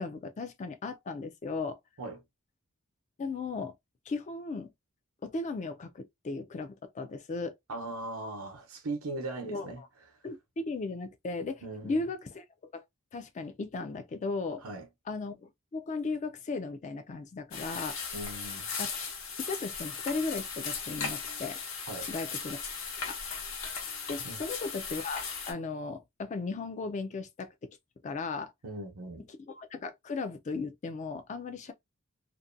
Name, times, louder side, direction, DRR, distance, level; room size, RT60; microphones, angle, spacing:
voice 1, 0.0-1.8 3.2-3.7 4.1-4.7 5.2-7.6 9.4-9.7 10.2-12.4 12.7-12.8 13.1-14.6 15.1-18.0 18.8-18.9 19.4-21.6 22.1-22.6 23.0-23.2 24.1-27.7 28.0-28.5 29.5-31.7, left 3 dB, 35° left, 0.3 m, -36 dB
voice 2, 7.7-9.8 11.6-12.0 14.6-14.9 18.1-18.7 21.9-22.1 24.2-24.4 28.6-29.3, right 2 dB, 80° right, 0.7 m, -39 dB
sound 1, 17.5-25.5, left 5 dB, 65° left, 0.8 m, -37 dB
2.5 x 2.1 x 2.5 m
head